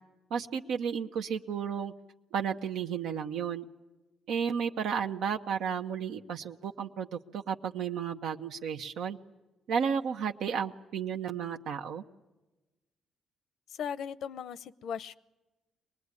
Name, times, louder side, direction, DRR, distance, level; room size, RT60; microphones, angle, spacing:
voice 1, 0.3-1.9 2.3-3.7 4.3-9.2 9.7-12.0, right 7 dB, 85° right, 4 dB, 0.9 m, -33 dB
voice 2, 13.7-15.2, left 7 dB, 70° left, 17 dB, 0.7 m, -37 dB
24.0 x 20.0 x 9.7 m, 1.1 s
cardioid pair, 90°, 0 cm